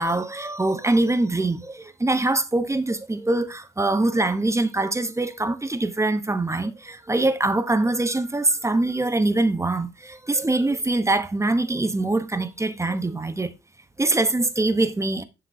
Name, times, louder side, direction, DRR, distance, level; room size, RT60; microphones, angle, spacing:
voice 1, 0.0-13.5 14.0-15.2, right 2 dB, 15° right, 0.9 m, -23 dB
9.8 x 6.6 x 2.7 m
cardioid pair, 90°, 20 cm